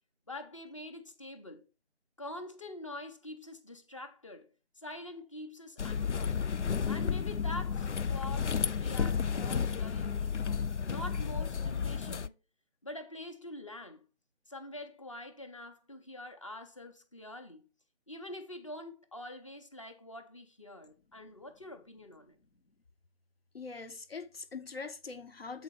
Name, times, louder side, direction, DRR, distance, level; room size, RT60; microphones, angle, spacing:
voice 1, 0.3-1.6 2.2-4.5 4.8-6.4 6.9-12.3 12.8-14.0 14.5-17.7 18.1-22.4, left 1 dB, 30° left, 0.9 m, -45 dB
sound 1, 5.8-12.3, left 6 dB, 85° left, 0.5 m, -32 dB
voice 2, 23.5-25.6, left 4 dB, 60° left, 1.0 m, -43 dB
8.1 x 4.1 x 5.2 m
figure-of-eight pair, 160°, 34 cm